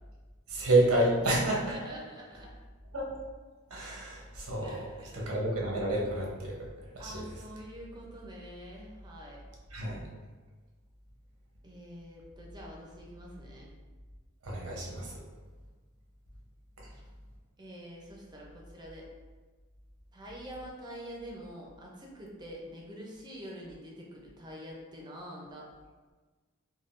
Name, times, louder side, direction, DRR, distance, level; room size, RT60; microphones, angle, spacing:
voice 1, 0.5-1.7 2.9-3.1 3.7-4.8 5.1-6.5 7.0-7.2 9.7-10.0 14.4-15.1, right 1 dB, 80° right, -3 dB, 0.7 m, -29 dB
voice 2, 1.7-2.6 4.6-5.3 7.0-9.4 11.6-13.7 16.9-17.0 17.6-19.1 20.1-25.7, equal, 20° right, -2 dB, 0.5 m, -46 dB
3.5 x 2.2 x 2.4 m, 1.4 s
head